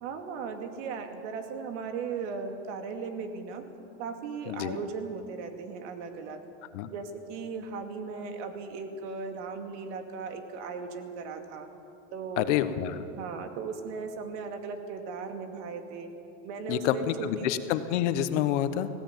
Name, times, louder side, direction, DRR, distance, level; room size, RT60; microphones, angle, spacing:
voice 1, 0.0-3.6 4.0-6.4 6.9-11.7 12.1-12.6 13.2-16.1 16.4-17.5, right 5 dB, 65° right, 6 dB, 2.5 m, -37 dB
voice 2, 4.5-4.8 6.7-6.9 12.4-13.0 16.7-18.9, left 11 dB, 70° left, 11 dB, 1.3 m, -28 dB
19.5 x 16.0 x 9.3 m, 2.9 s
supercardioid pair, 145°, 38 cm